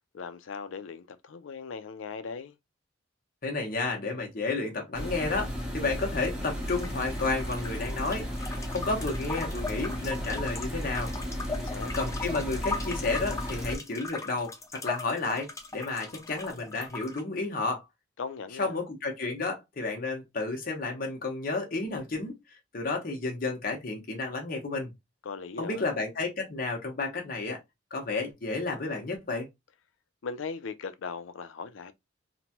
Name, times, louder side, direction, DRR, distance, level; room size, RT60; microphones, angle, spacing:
voice 1, 0.1-2.6 11.5-11.9 18.2-18.8 25.2-25.9 30.2-31.9, left 5 dB, 85° left, 0.4 m, -39 dB
voice 2, 3.4-5.5 5.7-11.1 11.9-17.8 18.6-22.3 22.7-24.9 25.6-27.6 27.9-29.5, left 3 dB, 50° left, 0.8 m, -31 dB
sound 1, 4.9-13.8, equal, 5° right, 0.8 m, -34 dB
sound 2, 6.6-17.2, left 3 dB, 15° left, 0.5 m, -39 dB
2.9 x 2.2 x 2.8 m
head